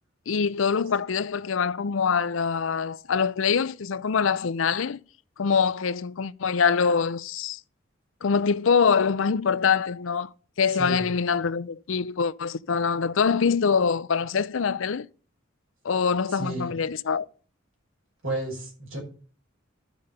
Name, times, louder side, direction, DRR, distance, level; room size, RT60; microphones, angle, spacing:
voice 1, 0.3-5.0 5.4-7.6 8.2-10.3 10.6-15.1 15.8-17.3, left 6 dB, 70° left, 0.6 m, -24 dB
voice 2, 10.7-11.1 16.3-16.7 18.2-19.0, right 2 dB, 80° right, 5.6 m, -32 dB
12.5 x 5.2 x 6.7 m
head